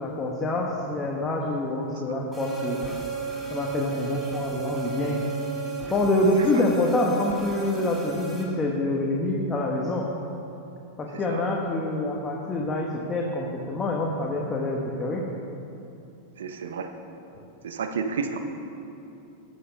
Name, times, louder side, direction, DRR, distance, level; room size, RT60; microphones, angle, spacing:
voice 1, 0.0-2.8 3.5-5.2 5.9-10.0 11.0-15.2, left 2 dB, 20° left, -2 dB, 1.2 m, -26 dB
sound 1, 2.3-8.4, right 5 dB, 5° right, 2.0 m, -34 dB
voice 2, 16.4-16.9 17.6-18.4, right 5 dB, 90° right, 7 dB, 1.0 m, -31 dB
12.0 x 7.1 x 5.2 m, 2.8 s
hypercardioid pair, 125°, 0 cm